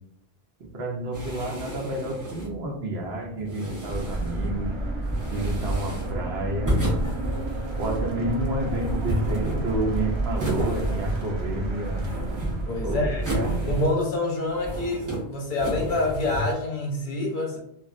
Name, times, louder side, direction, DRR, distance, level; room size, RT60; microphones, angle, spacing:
voice 1, 0.6-4.7 5.3-6.8 7.8-12.1 12.8-13.5, right 1 dB, 70° right, 1 dB, 0.9 m, -30 dB
sound 1, 1.1-2.6 3.4-4.5 5.0-6.2 6.7-8.1 8.7-9.9 10.4-11.4 11.7-12.7 13.2-14.1 14.5-15.2 15.6-16.5, right 1 dB, 15° right, 1.0 m, -31 dB
sound 2, 3.9-13.9, right 2 dB, 50° right, 0.3 m, -30 dB
voice 2, 5.3-5.8 12.7-13.2 13.7-17.6, left 2 dB, 55° left, -2 dB, 0.8 m, -27 dB
2.9 x 2.4 x 2.5 m, 0.73 s
omnidirectional pair, 1.1 m